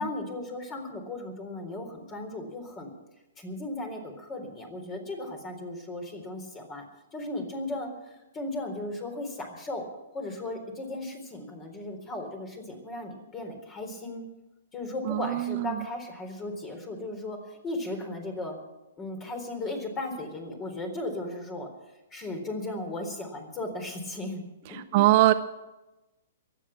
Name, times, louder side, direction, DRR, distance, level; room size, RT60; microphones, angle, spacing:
voice 1, 0.0-2.9 3.4-6.8 7.1-9.9 10.1-14.2 14.7-18.6 19.0-21.7 22.1-24.4 24.7-25.1, left 2 dB, 25° left, 5 dB, 4.0 m, -36 dB
voice 2, 15.1-15.8 24.7-25.3, right 16 dB, 45° right, 10 dB, 0.7 m, -22 dB
23.5 x 9.1 x 5.9 m, 1.0 s
hypercardioid pair, 120°, 0 cm